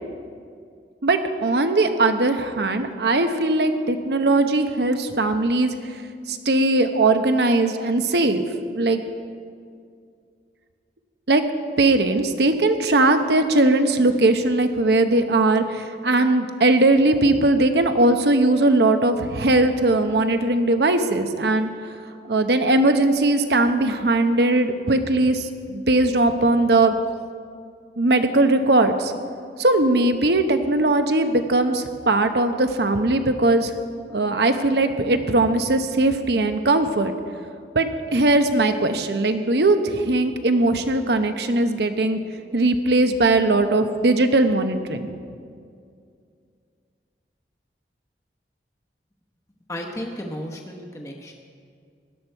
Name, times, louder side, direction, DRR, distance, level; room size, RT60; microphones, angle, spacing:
voice 1, 1.0-6.0 6.3-9.0 11.3-11.4 11.8-21.7 22.2-26.9 28.0-29.1 29.6-33.7 34.1-37.1 37.7-42.2 42.5-45.1, right 2 dB, 70° right, 7 dB, 0.9 m, -19 dB
voice 2, 49.7-51.3, equal, 20° left, 1 dB, 1.0 m, -33 dB
16.5 x 11.5 x 4.6 m, 2.3 s
head